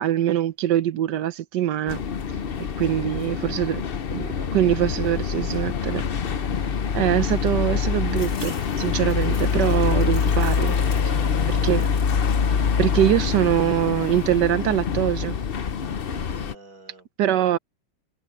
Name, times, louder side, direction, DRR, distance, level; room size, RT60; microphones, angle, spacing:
voice 1, 0.0-2.0 2.8-3.8 4.1-6.0 6.9-10.8 11.6-11.9 12.8-15.4 17.2-17.6, right 12 dB, 75° right, 1.3 m, -23 dB
sound 1, 1.9-16.5, left 6 dB, 50° left, 0.6 m, -25 dB
voice 2, 2.8-3.6 4.3-4.7 10.9-11.8 16.1-17.1, right 3 dB, 50° right, 6.8 m, -47 dB
sound 2, 8.1-11.4 11.7-12.3 12.7-13.5, left 2 dB, 75° left, 7.4 m, -46 dB
omnidirectional pair, 2.0 m